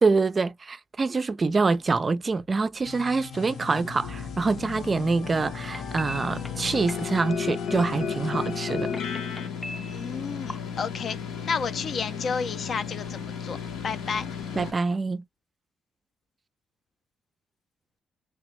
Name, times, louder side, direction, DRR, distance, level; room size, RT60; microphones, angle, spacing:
voice 1, 0.0-8.9 14.6-15.2, right 4 dB, 35° right, 0.4 m, -25 dB
sound 1, 2.8-9.5, left 6 dB, 70° left, 0.9 m, -34 dB
sound 2, 4.0-14.7, left 6 dB, 85° left, 1.2 m, -36 dB
sound 3, 5.6-10.6, equal, 10° left, 0.6 m, -43 dB
voice 2, 9.9-11.2 11.5-13.6 13.8-14.3, left 5 dB, 55° left, 0.5 m, -31 dB
3.3 x 2.8 x 3.1 m
cardioid pair, 90°, 0 cm